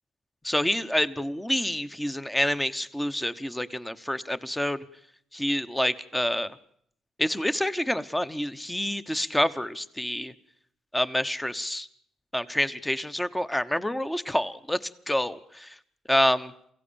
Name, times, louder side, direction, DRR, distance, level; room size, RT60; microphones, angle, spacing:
voice 1, 0.4-4.8 5.3-6.5 7.2-10.3 10.9-11.9 12.3-14.8 15.1-15.7 16.1-16.5, left 1 dB, 10° left, 13 dB, 1.0 m, -27 dB
23.0 x 16.0 x 8.7 m, 0.70 s
cardioid pair, 90°, 0 cm